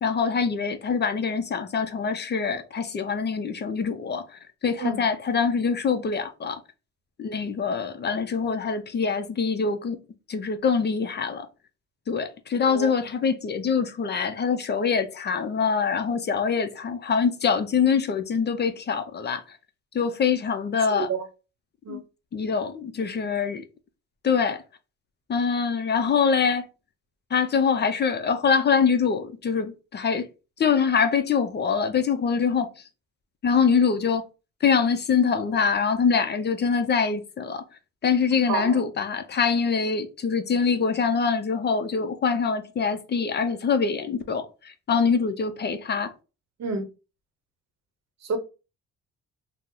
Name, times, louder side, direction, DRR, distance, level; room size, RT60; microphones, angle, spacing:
voice 1, 0.0-6.6 7.2-10.0 10.3-11.5 12.1-19.6 19.9-21.1 21.9-22.0 22.3-23.6 24.2-24.6 25.3-26.7 27.3-30.3 30.6-32.7 33.4-34.2 34.6-37.6 38.0-46.1, left 6 dB, 35° left, 0.4 m, -24 dB
voice 2, 20.9-21.2 21.8-22.0 38.5-38.8 46.6-46.9 48.2-48.4, right 4 dB, 60° right, 0.7 m, -29 dB
2.8 x 2.0 x 3.6 m
cardioid pair, 90°, 30 cm